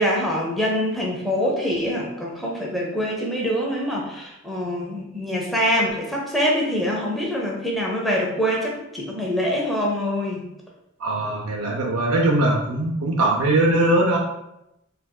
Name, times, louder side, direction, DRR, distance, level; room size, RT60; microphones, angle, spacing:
voice 1, 0.0-10.4, equal, ahead, -3 dB, 0.5 m, -24 dB
voice 2, 11.0-14.2, right 1 dB, 80° right, -1 dB, 0.5 m, -20 dB
4.4 x 2.5 x 2.2 m, 0.87 s
head